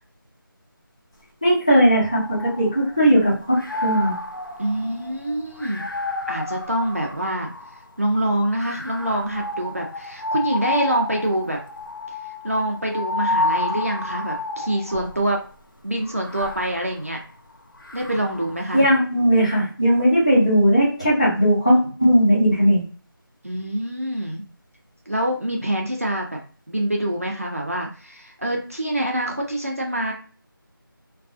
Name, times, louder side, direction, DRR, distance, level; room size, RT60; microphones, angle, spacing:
voice 1, 1.4-4.1 18.7-22.8, equal, 15° left, -10 dB, 0.8 m, -18 dB
sound 1, 1.9-3.1 3.5-7.9 8.6-15.3 16.0-18.6, left 2 dB, 65° left, 0.6 m, -30 dB
voice 2, 4.6-5.9 6.3-7.6 8.0-11.6 12.2-15.4 15.8-17.2 17.9-18.9 23.4-24.4 25.1-26.4 26.7-30.1, right 1 dB, 40° right, 0 dB, 0.4 m, -25 dB
2.4 x 2.2 x 2.4 m, 0.39 s
figure-of-eight pair, 175°, 12 cm